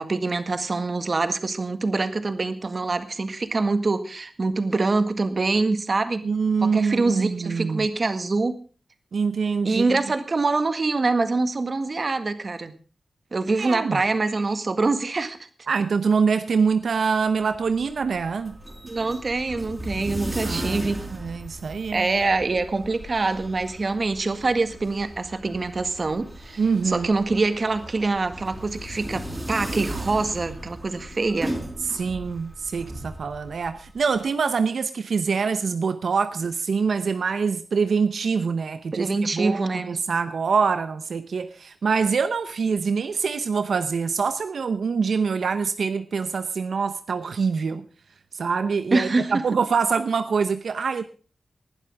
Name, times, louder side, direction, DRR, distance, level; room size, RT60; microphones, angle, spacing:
voice 1, 0.0-6.3 6.6-8.6 9.6-12.7 13.3-15.5 18.8-21.1 21.9-31.6 38.9-40.0 48.9-49.3, right 3 dB, 45° right, 10 dB, 1.8 m, -25 dB
voice 2, 6.2-7.8 9.1-10.0 13.6-14.0 15.7-18.6 20.4-20.8 21.1-22.1 26.6-27.1 31.9-47.9 48.3-51.1, right 5 dB, 85° right, 11 dB, 0.8 m, -25 dB
sound 1, 17.2-34.3, right 1 dB, 20° right, 4.4 m, -37 dB
19.5 x 11.5 x 3.5 m, 0.38 s
wide cardioid pair, 110°, 0 cm